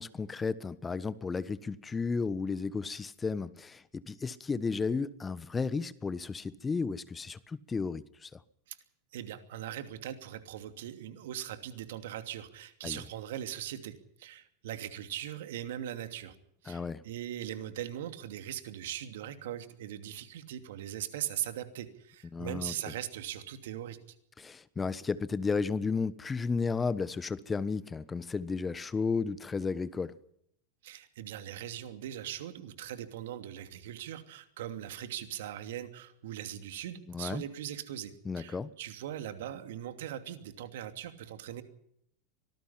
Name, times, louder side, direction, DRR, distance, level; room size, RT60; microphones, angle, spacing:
voice 1, 0.0-8.3 12.8-13.0 16.7-17.0 22.3-22.7 24.4-30.1 37.1-37.4 38.2-38.7, left 4 dB, 20° left, 1.2 m, -33 dB
voice 2, 9.1-16.4 16.6-24.0 30.8-41.6, right 11 dB, 70° right, 2.8 m, -40 dB
25.0 x 19.0 x 5.8 m
hypercardioid pair, 90°, 0 cm